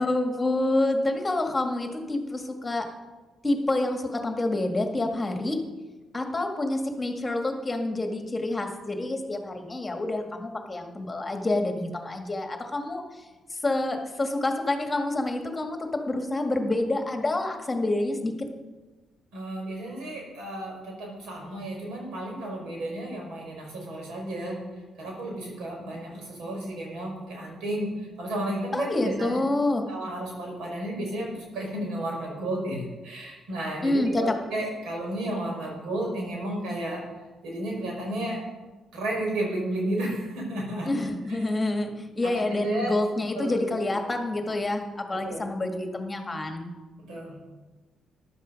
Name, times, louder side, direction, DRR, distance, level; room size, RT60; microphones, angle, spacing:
voice 1, 0.0-2.9 3.4-5.6 6.1-18.3 28.7-29.8 33.8-34.3 40.9-46.7, left 2 dB, 20° left, 4 dB, 1.8 m, -28 dB
voice 2, 19.3-24.6 25.0-29.4 29.9-37.0 37.4-38.4 38.9-40.9 42.2-42.9 43.3-43.7 45.1-45.5 47.1-47.4, right 1 dB, 85° right, -1 dB, 5.4 m, -32 dB
14.0 x 11.0 x 5.3 m, 1.2 s
cardioid pair, 90°, 0 cm